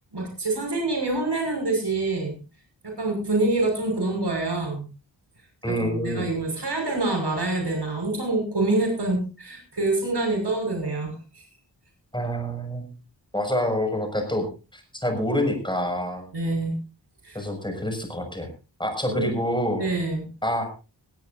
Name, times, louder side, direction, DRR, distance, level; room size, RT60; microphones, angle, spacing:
voice 1, 0.1-2.4 2.8-4.8 5.7-11.4 16.3-16.7 17.2-17.4 19.1-19.3 19.8-20.3, right 2 dB, 65° right, 2 dB, 6.1 m, -26 dB
voice 2, 5.6-6.3 12.1-12.9 13.3-14.5 14.7-16.3 17.3-18.5 18.8-19.9 20.4-20.7, equal, 10° left, 4 dB, 6.4 m, -27 dB
19.5 x 17.0 x 2.7 m, 0.32 s
wide cardioid pair, 80°, 43 cm